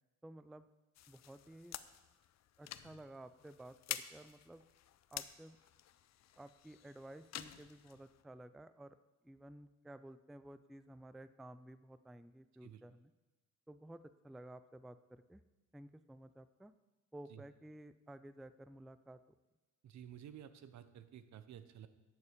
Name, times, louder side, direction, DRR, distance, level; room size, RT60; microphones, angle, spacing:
voice 1, 0.2-0.7 1.1-1.8 2.6-4.6 5.1-5.6 6.4-9.0 9.2-13.1 13.7-15.4 15.7-16.7 17.1-19.2, right 1 dB, ahead, 13 dB, 0.3 m, -54 dB
sound 1, 1.0-8.2, left 11 dB, 60° left, 0.6 m, -50 dB
voice 2, 19.8-21.9, right 10 dB, 65° right, 12 dB, 0.8 m, -53 dB
11.0 x 7.2 x 5.1 m, 1.1 s
cardioid pair, 90°, 30 cm